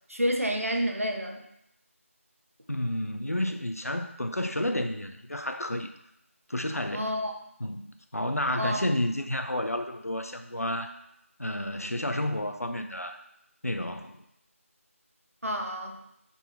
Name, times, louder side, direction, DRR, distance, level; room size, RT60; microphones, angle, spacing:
voice 1, 0.1-1.4 6.9-7.3 8.6-8.8 15.4-16.0, equal, 70° right, 2 dB, 1.1 m, -29 dB
voice 2, 2.7-5.9 6.5-7.1 7.6-7.9 8.1-10.9 11.4-13.2 13.6-14.2, left 1 dB, 90° left, 6 dB, 0.6 m, -31 dB
6.0 x 4.2 x 4.3 m, 0.80 s
figure-of-eight pair, 170°, 8 cm